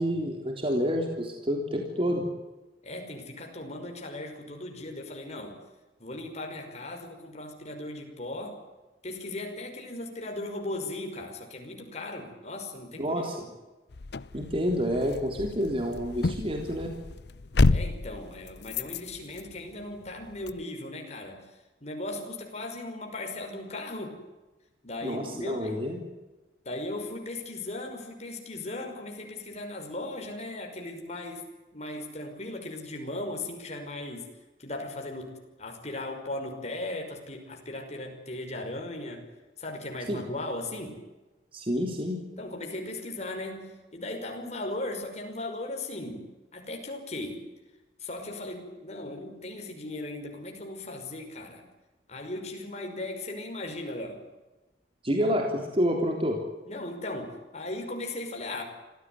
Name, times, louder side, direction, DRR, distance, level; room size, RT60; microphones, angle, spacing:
voice 1, 0.0-2.3 13.0-13.4 14.3-16.9 25.0-26.0 40.1-40.2 41.5-42.2 55.0-56.4, equal, 30° right, 2 dB, 3.6 m, -28 dB
voice 2, 2.8-5.6 6.0-8.6 9.0-13.5 17.7-21.4 21.8-24.2 24.8-25.8 26.6-31.4 31.7-34.3 34.6-39.2 39.6-41.0 42.4-47.4 48.0-51.6 52.1-54.2 56.7-58.6, left 2 dB, 40° left, 3 dB, 5.6 m, -37 dB
sound 1, 13.9-20.6, left 3 dB, 65° left, 0.7 m, -30 dB
26.5 x 16.5 x 9.5 m, 1.1 s
head